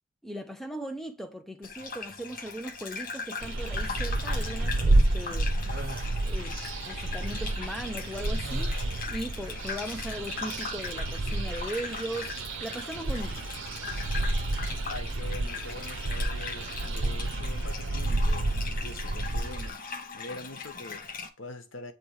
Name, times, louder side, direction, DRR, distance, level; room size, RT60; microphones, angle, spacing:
voice 1, 0.2-5.5 6.2-6.6 6.8-8.8 9.1-12.3 12.6-13.5, right 1 dB, ahead, 0.7 m, -38 dB
Gurgling / Bathtub (filling or washing), 1.6-21.3, left 5 dB, 45° left, 0.9 m, -40 dB
sound 1, 3.4-19.7, right 2 dB, 85° right, 0.7 m, -30 dB
sound 2, 5.7-6.2 8.4-9.1, right 1 dB, 50° right, 1.8 m, -41 dB
voice 2, 14.9-19.8 20.1-21.9, left 2 dB, 90° left, 1.0 m, -44 dB
8.3 x 3.3 x 4.8 m
head